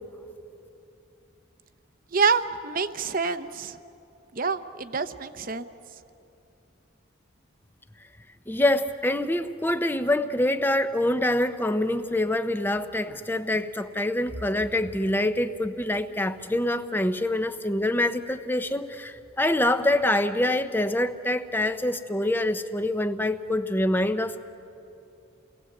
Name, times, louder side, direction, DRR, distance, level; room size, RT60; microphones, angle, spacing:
voice 1, 2.1-3.8 4.3-5.7, right 5 dB, 45° right, 11 dB, 0.8 m, -27 dB
voice 2, 8.5-24.4, left 1 dB, 10° left, 10 dB, 0.8 m, -25 dB
30.0 x 19.5 x 7.9 m, 2.8 s
head